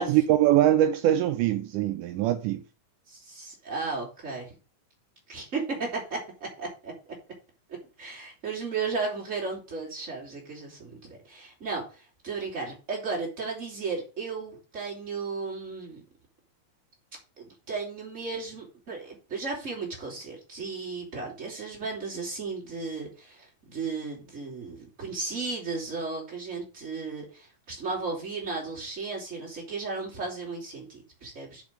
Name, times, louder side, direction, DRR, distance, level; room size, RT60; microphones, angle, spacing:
voice 1, 0.0-2.6, right 12 dB, 80° right, 2.1 m, -23 dB
voice 2, 3.1-4.6 5.3-6.9 8.0-16.0 17.4-31.6, right 4 dB, 20° right, 3.8 m, -35 dB
7.1 x 5.3 x 6.4 m
omnidirectional pair, 3.8 m